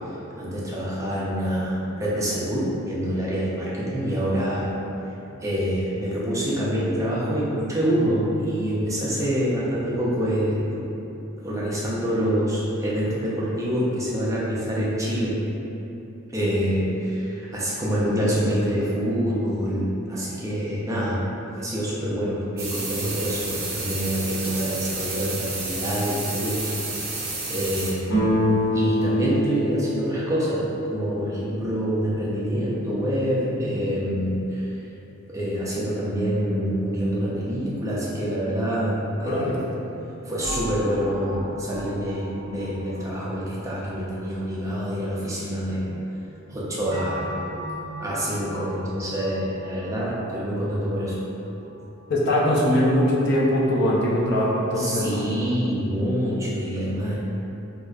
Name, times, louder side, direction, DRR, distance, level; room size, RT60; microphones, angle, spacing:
voice 1, 0.1-4.7 5.4-10.9 11.4-15.4 16.3-21.2 21.6-26.7 27.0-28.4 28.7-34.8 35.3-39.5 40.2-45.9 46.5-47.3 48.0-51.2 54.8-57.1, equal, 15° right, -7 dB, 0.5 m, -26 dB
sound 1, 22.6-27.9, right 3 dB, 70° right, 0.7 m, -31 dB
sound 2, 28.0-31.7, left 1 dB, 85° left, 1.1 m, -25 dB
voice 2, 39.2-39.6 52.1-55.3, left 1 dB, 55° left, -5 dB, 0.5 m, -22 dB
sound 3, 40.4-44.9 46.9-52.3 52.7-52.8, equal, 45° right, 0.9 m, -38 dB
4.9 x 2.1 x 2.3 m, 3.0 s
head